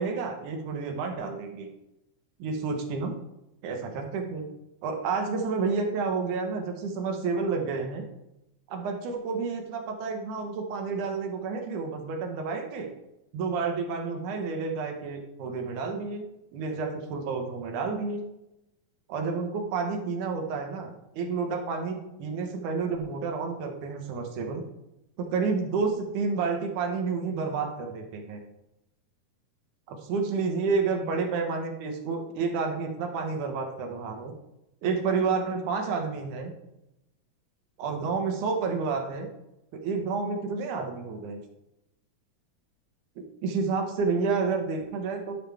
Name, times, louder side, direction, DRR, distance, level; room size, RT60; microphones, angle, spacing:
voice 1, 0.0-1.7 2.4-3.2 3.6-4.4 4.8-8.0 8.7-12.9 13.3-16.2 16.5-18.2 19.1-20.9 21.1-24.6 25.2-28.4 29.9-34.3 34.8-36.5 37.8-39.3 39.7-41.4 43.4-45.4, right 4 dB, 75° right, 4 dB, 2.5 m, -30 dB
11.0 x 6.4 x 3.4 m, 0.91 s
omnidirectional pair, 3.6 m